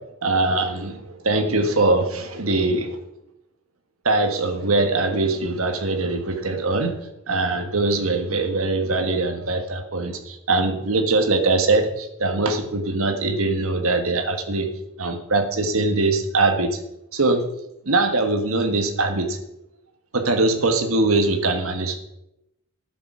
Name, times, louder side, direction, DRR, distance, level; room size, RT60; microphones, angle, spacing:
voice 1, 0.2-3.0 4.0-7.0 7.3-14.7 15.0-16.8 17.1-17.4 17.8-19.4 20.1-22.0, right 2 dB, 85° right, 6 dB, 1.6 m, -22 dB
12.5 x 7.2 x 6.2 m, 0.86 s
head